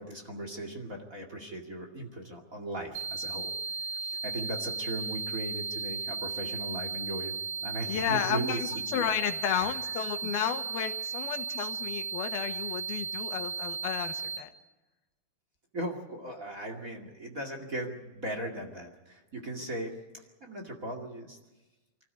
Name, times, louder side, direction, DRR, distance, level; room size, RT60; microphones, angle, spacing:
voice 1, 0.0-3.5 3.9-7.3 7.6-9.1 9.6-9.7 15.7-21.4, right 1 dB, 30° right, 3 dB, 2.1 m, -38 dB
sound 1, 2.9-14.4, right 5 dB, 55° right, 2.0 m, -35 dB
voice 2, 7.9-14.5, left 10 dB, 90° left, 8 dB, 3.2 m, -32 dB
25.0 x 14.5 x 9.5 m, 1.1 s
omnidirectional pair, 4.2 m